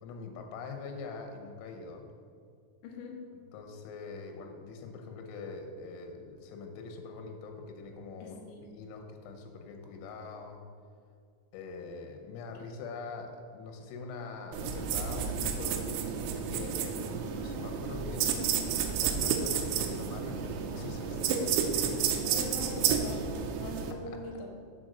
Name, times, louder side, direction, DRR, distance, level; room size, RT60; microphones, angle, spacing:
voice 1, 0.0-2.0 3.5-8.4 8.7-10.6 11.5-15.8 16.2-18.6 19.0-22.1 22.7-23.1, left 4 dB, 90° left, 4 dB, 3.6 m, -43 dB
voice 2, 2.8-3.2 8.2-8.6 22.2-24.5, left 3 dB, 75° left, 0 dB, 3.1 m, -42 dB
sound 1, 14.5-23.9, right 7 dB, 90° right, 2.5 m, -31 dB
7.6 x 4.2 x 6.4 m, 2.3 s
omnidirectional pair, 5.9 m